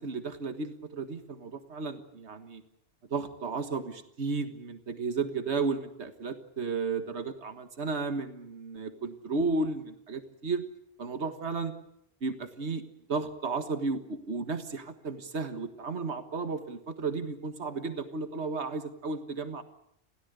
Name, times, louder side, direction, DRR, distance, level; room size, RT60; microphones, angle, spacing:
voice 1, 0.0-2.6 3.1-10.6 11.0-11.7 12.2-12.8 13.1-19.6, right 4 dB, 75° right, 8 dB, 1.9 m, -33 dB
27.5 x 17.0 x 8.1 m, 0.73 s
omnidirectional pair, 1.1 m